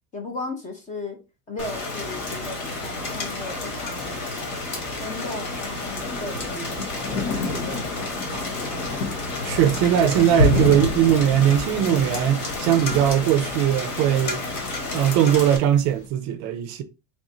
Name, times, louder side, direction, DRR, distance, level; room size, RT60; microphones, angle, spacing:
voice 1, 0.1-1.2 1.5-8.5, left 2 dB, 20° left, 0.5 m, -37 dB
Rain, 1.6-15.6, left 2 dB, 50° left, 1.5 m, -31 dB
Thunder, 4.1-16.0, left 2 dB, 80° left, 1.1 m, -30 dB
voice 2, 9.4-14.4 14.9-16.8, right 10 dB, 50° right, 0.5 m, -20 dB
3.4 x 2.5 x 4.1 m
cardioid pair, 175°, 42 cm